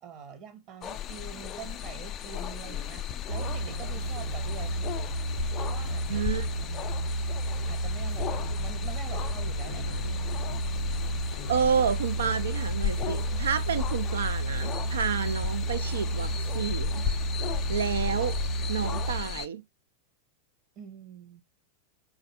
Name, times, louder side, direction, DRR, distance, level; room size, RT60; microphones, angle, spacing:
voice 1, 0.0-4.9 5.7-7.2 7.7-10.0 20.8-21.4, right 7 dB, 35° right, 0.9 m, -45 dB
sound 1, 0.8-19.5, left 11 dB, 30° left, 0.4 m, -36 dB
sound 2, 3.3-19.2, right 2 dB, 80° right, 1.2 m, -31 dB
voice 2, 6.1-6.5 11.5-17.0 17.7-18.4 18.7-19.6, right 7 dB, 65° right, 0.4 m, -30 dB
4.0 x 2.4 x 3.2 m
figure-of-eight pair, 90°, 0 cm